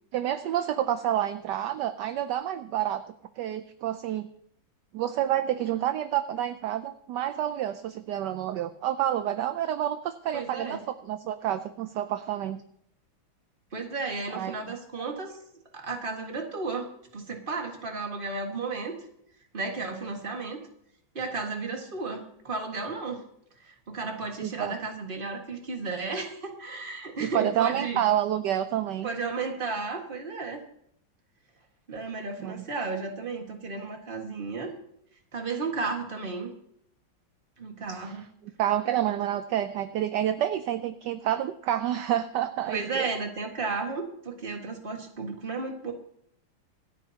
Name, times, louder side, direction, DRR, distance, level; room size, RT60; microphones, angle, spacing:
voice 1, 0.1-3.0 3.4-4.3 4.9-12.6 14.3-14.6 15.0-15.1 24.4-24.7 27.2-29.1 32.4-32.6 37.9-38.1 38.6-43.1, right 11 dB, 70° right, 11 dB, 1.1 m, -29 dB
voice 2, 10.3-10.8 13.7-15.4 15.7-16.9 17.1-18.9 19.5-20.6 21.1-23.2 23.6-28.0 29.0-30.6 31.9-34.7 35.3-36.5 37.6-38.2 42.7-45.9, right 4 dB, 25° right, 2 dB, 1.7 m, -33 dB
26.0 x 9.0 x 2.8 m, 0.71 s
omnidirectional pair, 2.2 m